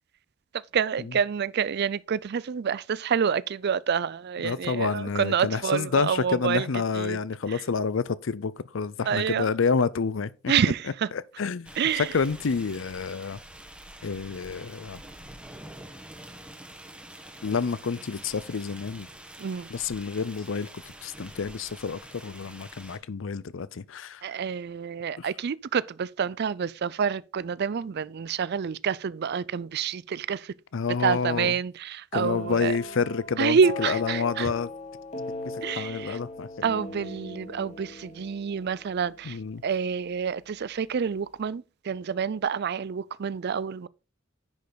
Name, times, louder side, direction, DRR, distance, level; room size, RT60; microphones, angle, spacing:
voice 1, 0.5-6.7 6.9-7.2 7.5-7.6 9.1-9.5 10.5-11.1 11.8-12.2 19.4-19.7 24.2-30.5 31.0-32.8 33.4-34.5 35.6-36.2 36.6-43.9, right 7 dB, 55° right, 0.4 m, -28 dB
voice 2, 4.4-10.3 11.4-13.4 14.0-15.0 17.4-19.1 19.7-24.2 25.2-25.3 30.7-31.5 32.1-34.7 35.5-36.5 39.2-39.6, left 5 dB, 70° left, 0.5 m, -29 dB
sound 1, 11.7-23.0, right 1 dB, 5° right, 1.3 m, -46 dB
sound 2, 32.1-39.8, left 2 dB, 35° left, 2.1 m, -39 dB
10.5 x 5.3 x 4.1 m
head